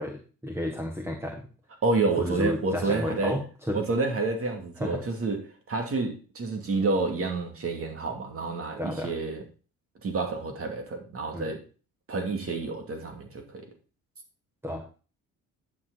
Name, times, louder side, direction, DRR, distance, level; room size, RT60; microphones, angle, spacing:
voice 1, 0.0-1.5 2.2-3.8 4.8-5.0 8.8-9.1 11.3-11.5 14.6-14.8, left 1 dB, 10° right, 3 dB, 1.7 m, -32 dB
voice 2, 1.8-3.4 3.7-5.4 5.7-9.4 10.0-11.6 12.1-13.6, right 3 dB, 50° right, 3 dB, 2.6 m, -29 dB
11.0 x 6.2 x 4.1 m, 0.35 s
cardioid pair, 90°, 30 cm